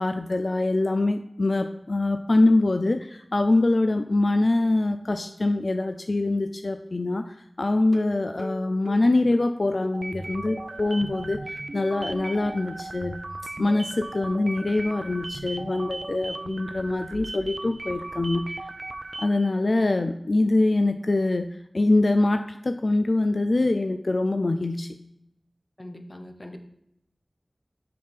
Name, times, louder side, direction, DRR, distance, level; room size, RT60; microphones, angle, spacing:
voice 1, 0.0-13.2 13.6-18.4 19.2-21.5 21.7-25.0, left 2 dB, 70° left, 8 dB, 0.3 m, -24 dB
sound 1, 7.8-10.4 10.7-10.8 11.2-11.3 11.6-11.7, right 1 dB, 15° right, 0.6 m, -41 dB
sound 2, 9.9-19.5, right 2 dB, 65° right, 0.5 m, -37 dB
voice 2, 25.8-26.6, left 1 dB, 30° left, 6 dB, 0.9 m, -41 dB
6.5 x 5.8 x 3.5 m, 0.79 s
wide cardioid pair, 40°, 0 cm